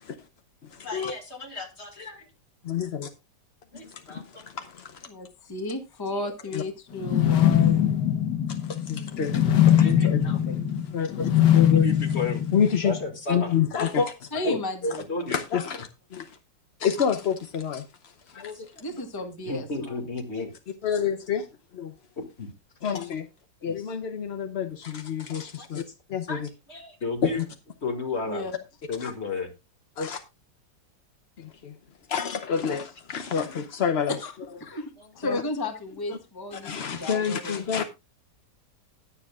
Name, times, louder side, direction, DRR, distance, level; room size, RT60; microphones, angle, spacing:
voice 1, 0.8-2.2 3.7-4.5 6.1-6.3 8.7-8.8 9.7-10.4 11.7-12.5 12.8-13.6 14.3-14.6 15.1-15.4 18.3-18.7 19.2-20.5 22.2-22.5 25.6-25.7 26.3-26.4 26.7-27.5 27.8-28.5 28.9-29.5 35.0-35.1 37.0-37.2, left 3 dB, 35° left, 2.3 m, -34 dB
voice 2, 2.6-3.1 3.7-5.1 6.5-6.6 8.5-10.6 10.9-11.9 12.5-13.0 13.3-14.3 14.8-15.0 15.3-16.3 16.8-17.8 18.4-18.6 20.8-21.5 21.7-21.9 22.8-23.3 23.6-25.8 26.1-26.5 27.2-27.3 29.0-29.1 30.0-30.2 31.4-31.7 32.1-34.2 35.2-35.4 36.6-37.8, left 7 dB, 55° left, 0.7 m, -28 dB
voice 3, 5.1-7.9 14.3-15.0 18.8-19.9 28.3-28.5 34.2-34.3 34.6-37.6, left 1 dB, 15° left, 1.2 m, -33 dB
sound 1, 7.0-13.1, left 10 dB, 75° left, 1.7 m, -22 dB
20.0 x 7.0 x 2.4 m
omnidirectional pair, 1.9 m